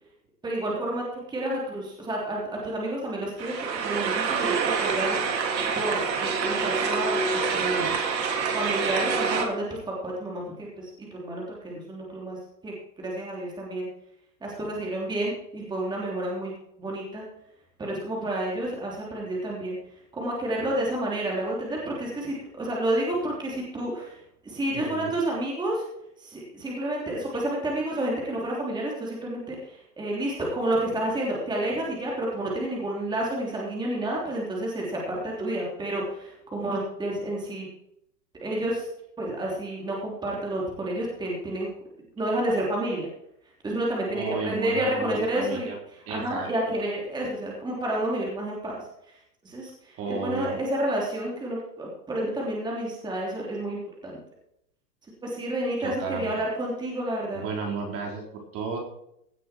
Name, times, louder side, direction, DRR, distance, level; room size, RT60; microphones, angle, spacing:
voice 1, 0.4-3.5 3.8-5.2 5.7-7.2 7.5-8.0 8.5-12.4 12.6-13.9 14.4-17.2 17.8-19.8 20.1-24.1 24.4-25.8 26.2-29.6 30.0-37.7 38.4-38.9 39.2-41.7 42.2-43.1 43.6-45.7 46.1-48.8 49.4-54.2 55.2-57.4, right 1 dB, 10° right, -3 dB, 3.3 m, -30 dB
sound 1, 3.4-9.5, right 5 dB, 85° right, 3.2 m, -26 dB
voice 2, 24.7-25.2 44.1-45.8 46.1-46.5 50.0-50.6 55.8-56.3 57.3-58.2 58.5-58.8, right 4 dB, 30° right, 1 dB, 3.6 m, -33 dB
17.0 x 7.5 x 4.5 m, 0.75 s
hypercardioid pair, 150°, 49 cm